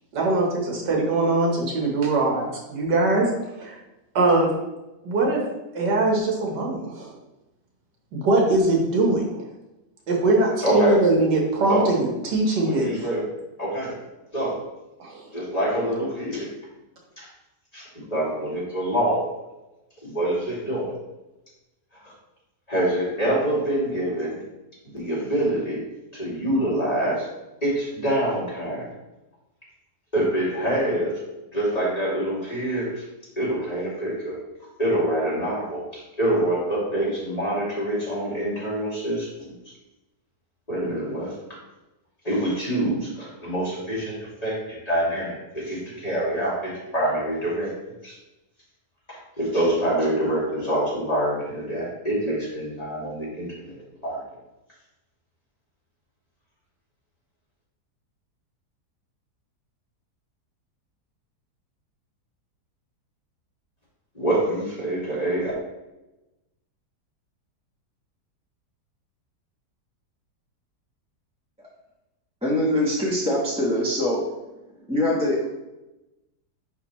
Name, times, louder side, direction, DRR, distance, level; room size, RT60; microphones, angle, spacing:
voice 1, 0.1-3.3 3.6-3.8 4.2-4.5 5.0-5.4 5.7-7.1 8.1-9.2 10.1-13.1 15.0-15.2, right 2 dB, 90° right, -1 dB, 1.9 m, -21 dB
voice 2, 10.6-11.0 11.7-11.9 12.6-13.2 13.6-13.9 14.3-14.5 15.3-16.5 17.2-17.3 17.7-19.2 20.0-20.9 22.0-22.1 22.7-24.4 24.8-25.8 26.1-27.3 27.6-28.9 30.1-31.2 31.5-33.0 33.4-34.4 34.8-39.5 40.7-41.4 42.2-44.2 44.4-47.7 48.0-48.1 49.1-53.7 54.0-54.2 64.1-65.5, right 1 dB, 20° left, -7 dB, 2.5 m, -25 dB
voice 3, 72.4-74.2 74.9-75.5, left 1 dB, 5° right, -5 dB, 0.9 m, -23 dB
10.0 x 3.4 x 3.1 m, 0.99 s
omnidirectional pair, 1.8 m